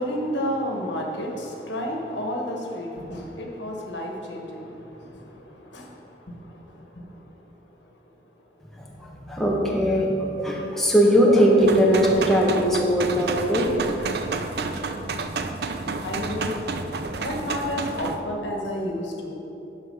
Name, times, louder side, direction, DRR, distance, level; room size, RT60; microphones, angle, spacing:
voice 1, 0.0-7.4 16.0-16.5 17.2-19.3, equal, 80° left, 0 dB, 1.4 m, -31 dB
voice 2, 9.3-13.7, equal, ahead, -3 dB, 1.0 m, -19 dB
sound 1, 11.6-18.2, right 3 dB, 55° right, 0.5 m, -30 dB
9.6 x 6.5 x 5.5 m, 3.0 s
head